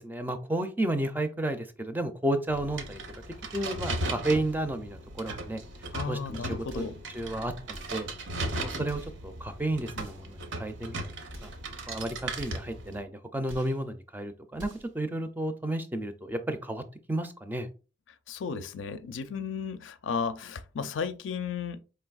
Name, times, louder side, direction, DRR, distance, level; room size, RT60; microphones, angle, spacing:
voice 1, 0.0-3.0 3.5-5.6 6.1-6.8 7.1-8.1 8.6-11.0 11.4-11.5 11.9-14.7 14.9-17.7, right 1 dB, 10° right, 0.4 m, -32 dB
sound 1, 2.5-13.0, right 2 dB, 70° right, 0.7 m, -37 dB
voice 2, 5.9-7.0 18.3-21.8, left 5 dB, 80° left, 0.4 m, -34 dB
sound 2, 6.7-7.0 7.7-8.1 8.8-9.2 9.9-10.3 11.3-11.7 12.3-12.7 13.4-13.8 14.5-15.0, equal, 90° right, 1.3 m, -47 dB
4.7 x 3.2 x 2.3 m
head